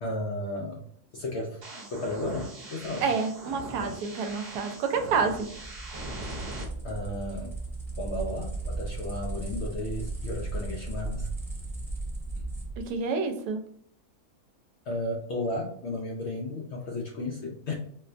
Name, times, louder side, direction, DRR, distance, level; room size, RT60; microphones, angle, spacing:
voice 1, 0.0-0.8 1.1-1.6 1.9-3.1 6.8-7.6 8.0-11.3 14.9-17.7, left 1 dB, 70° left, -1 dB, 0.6 m, -33 dB
sound 1, 1.6-6.6, right 1 dB, 45° right, 1.0 m, -41 dB
voice 2, 3.0-5.5 12.8-13.6, right 5 dB, 80° right, 7 dB, 1.1 m, -28 dB
sound 2, 5.4-12.9, right 2 dB, ahead, 0.9 m, -36 dB
4.2 x 2.2 x 2.5 m, 0.65 s
omnidirectional pair, 1.6 m